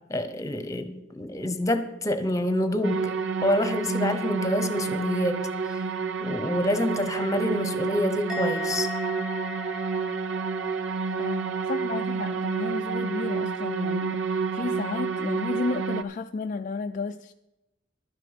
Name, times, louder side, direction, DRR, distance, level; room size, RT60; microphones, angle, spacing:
voice 1, 0.1-3.1 3.4-5.8 6.2-8.9, left 1 dB, 20° left, 9 dB, 1.0 m, -27 dB
sound 1, 2.8-16.0, right 5 dB, 80° right, 0.6 m, -29 dB
Musical instrument, 8.3-11.7 11.9-12.4, left 3 dB, 5° right, 1.4 m, -38 dB
voice 2, 11.2-17.3, left 3 dB, 45° left, 6 dB, 0.4 m, -33 dB
12.0 x 10.0 x 5.1 m, 0.96 s
head